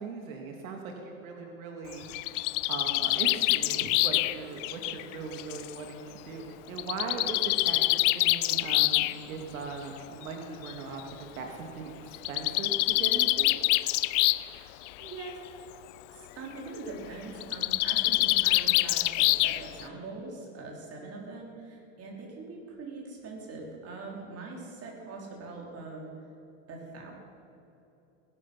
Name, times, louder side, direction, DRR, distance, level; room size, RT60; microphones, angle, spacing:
voice 1, 0.0-11.9 12.3-13.5, right 4 dB, 80° right, 2 dB, 2.2 m, -39 dB
Bird, 1.9-5.7 6.8-9.1 10.2-10.3 10.7-10.8 11.0-11.1 12.1-14.6 14.9-15.3 17.4-19.8, left 20 dB, 65° left, 0.6 m, -26 dB
voice 2, 14.3-15.4 16.1-26.2 26.7-27.1, right 3 dB, 35° right, -1 dB, 4.5 m, -42 dB
19.5 x 12.0 x 5.6 m, 2.9 s
supercardioid pair, 115°, 40 cm